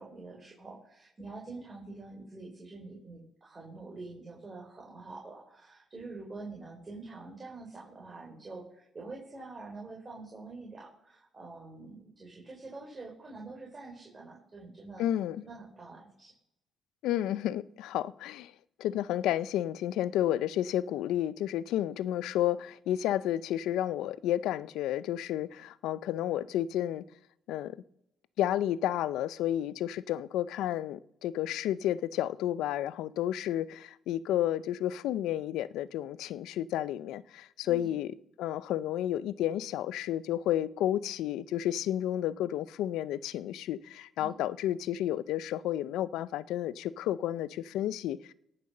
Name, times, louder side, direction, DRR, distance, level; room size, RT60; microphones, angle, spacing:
voice 1, 0.0-15.1 15.4-16.3 37.6-37.9 44.2-44.3, right 3 dB, 30° right, 4.3 m, -46 dB
voice 2, 15.0-15.4 17.0-18.5 18.8-27.0 27.5-27.8 28.4-38.1 38.4-48.3, left 12 dB, 90° left, 0.5 m, -31 dB
18.0 x 6.7 x 6.6 m
cardioid pair, 90°, 0 cm